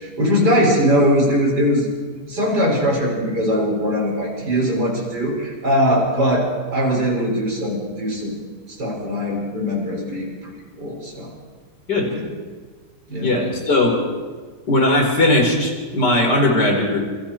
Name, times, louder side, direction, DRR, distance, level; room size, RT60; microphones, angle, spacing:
voice 1, 0.0-1.9 2.3-6.4 6.7-8.4 8.7-11.3 12.1-12.2 13.1-13.3, equal, 70° right, -2 dB, 6.5 m, -21 dB
voice 2, 13.2-14.0 14.7-17.0, left 1 dB, 70° left, 1 dB, 5.0 m, -18 dB
28.0 x 24.5 x 4.5 m, 1.5 s
omnidirectional pair, 1.8 m